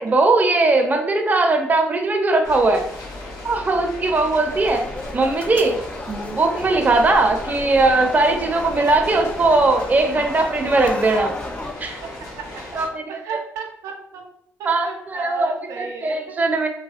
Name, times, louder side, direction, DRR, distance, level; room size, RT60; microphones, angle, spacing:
voice 1, 0.0-2.8 3.4-4.8 5.1-5.7 6.1-11.3 11.8-12.0 12.7-13.0 14.6-16.7, right 2 dB, 30° right, 3 dB, 0.6 m, -19 dB
sound 1, 2.4-12.9, left 1 dB, 60° left, 1.0 m, -37 dB
sound 2, 4.4-11.7, left 2 dB, 20° left, 0.4 m, -33 dB
voice 2, 11.8-12.6 13.1-14.2 14.6-16.4, right 5 dB, 75° right, 1 dB, 0.5 m, -35 dB
3.4 x 2.1 x 2.4 m, 0.70 s
supercardioid pair, 60°, 6 cm